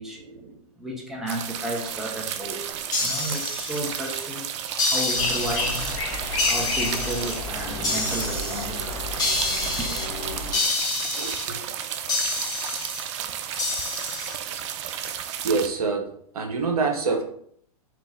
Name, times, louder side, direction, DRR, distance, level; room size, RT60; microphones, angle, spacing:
voice 1, 0.0-0.6 11.1-11.6 15.4-16.1 16.3-17.2, right 4 dB, 70° right, 3 dB, 1.1 m, -26 dB
voice 2, 0.8-2.7 3.0-5.9 6.5-9.1 9.8-10.0, right 1 dB, ahead, -1 dB, 0.8 m, -33 dB
sound 1, 1.3-15.7, right 9 dB, 50° right, 0.5 m, -33 dB
sound 2, 2.9-4.3 4.8-5.9 6.4-7.4 7.8-8.6 9.2-10.1 10.5-11.4 12.1-13.0 13.6-14.4, left 2 dB, 20° left, 1.4 m, -28 dB
sound 3, 5.2-10.5, left 2 dB, 50° left, 1.2 m, -31 dB
3.9 x 3.1 x 3.8 m, 0.65 s
hypercardioid pair, 110°, 20 cm